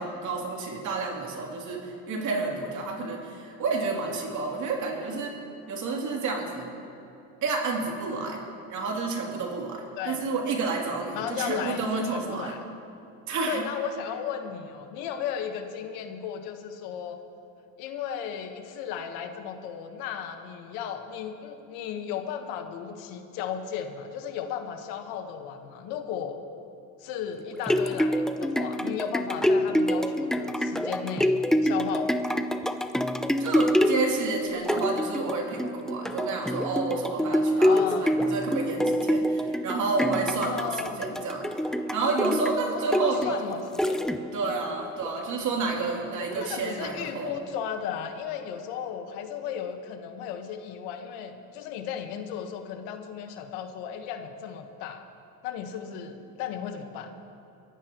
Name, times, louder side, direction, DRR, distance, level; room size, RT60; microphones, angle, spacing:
voice 1, 0.0-5.3 5.7-6.7 7.4-8.4 8.7-12.5 13.3-13.6 33.4-40.7 41.0-41.5 41.9-43.4 44.3-47.3, right 4 dB, 55° right, -1 dB, 3.0 m, -30 dB
voice 2, 11.1-12.6 13.5-17.2 17.8-26.4 27.0-32.3 37.6-38.2 40.4-41.1 42.7-44.0 46.2-55.0 55.4-57.1, left 8 dB, 85° left, 6 dB, 1.4 m, -35 dB
sound 1, 27.4-44.5 45.0-45.1, equal, ahead, 0.5 m, -26 dB
23.0 x 14.5 x 3.1 m, 2.7 s
cardioid pair, 110°, 36 cm